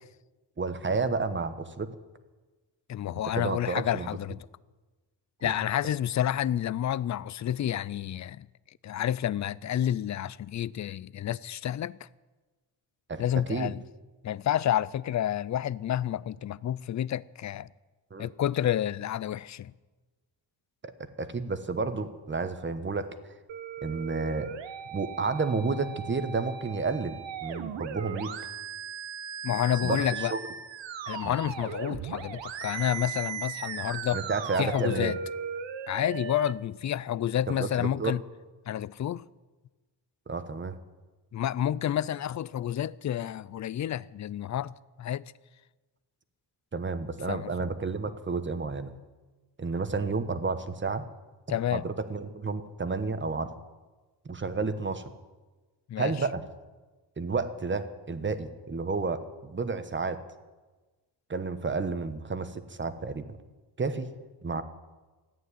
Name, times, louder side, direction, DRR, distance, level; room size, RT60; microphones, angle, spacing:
voice 1, 0.6-1.9 3.3-4.1 5.4-5.5 13.1-13.2 13.5-13.7 18.1-18.3 21.2-23.1 23.8-24.5 24.9-28.3 29.8-30.0 30.3-30.4 31.2-31.3 34.1-35.1 37.6-38.2 40.3-40.8 46.7-48.9 49.6-51.1 51.5-53.5 54.2-55.1 56.0-56.4 57.2-60.2 61.3-63.4 63.8-64.1 64.4-64.6, right 4 dB, 25° right, 1.2 m, -31 dB
voice 2, 2.9-4.5 5.4-8.5 8.8-12.0 13.2-13.8 14.2-17.7 18.2-19.7 29.4-30.3 31.1-34.2 34.6-35.2 35.9-38.2 38.7-39.2 41.3-44.7 45.0-45.3 47.3-47.5 51.5-51.9 55.9-56.1, left 11 dB, 45° left, 0.4 m, -29 dB
sound 1, 23.5-36.5, right 8 dB, 80° right, 1.2 m, -38 dB
14.0 x 9.2 x 9.8 m
cardioid pair, 100°, 44 cm